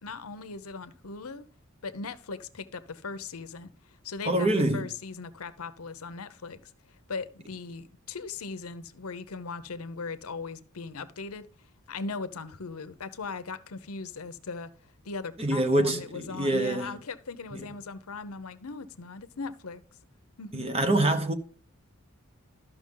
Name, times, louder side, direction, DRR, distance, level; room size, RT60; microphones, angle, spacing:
voice 1, 0.0-1.5 1.8-14.7 15.0-19.8 20.4-20.7, left 4 dB, 75° left, 0.7 m, -39 dB
voice 2, 4.2-4.9 15.4-16.9 20.5-21.3, right 1 dB, 25° right, 0.9 m, -25 dB
12.5 x 5.9 x 3.8 m
head